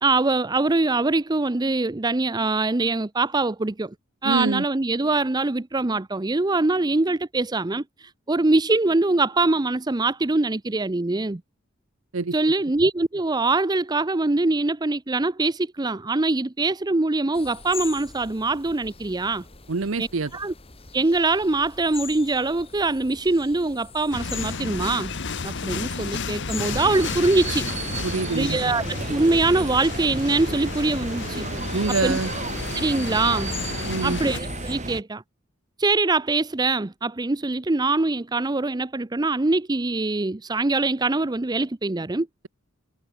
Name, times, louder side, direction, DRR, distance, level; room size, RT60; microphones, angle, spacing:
voice 1, 0.0-3.9 4.2-11.4 12.3-19.4 20.0-20.1 20.3-20.5 20.9-25.1 25.4-27.7 28.3-31.5 32.0-32.2 32.8-33.5 34.0-35.2 35.8-42.3, right 2 dB, 20° right, 0.6 m, -23 dB
voice 2, 4.2-4.7 12.1-12.4 19.7-20.3 28.0-28.7 31.7-32.3 33.9-34.2, right 4 dB, 75° right, 0.8 m, -25 dB
sound 1, 17.3-34.7, left 6 dB, 30° left, 2.6 m, -42 dB
sound 2, 24.1-34.4, left 4 dB, 60° left, 1.2 m, -32 dB
sound 3, 26.6-35.0, right 2 dB, 35° right, 4.5 m, -33 dB
head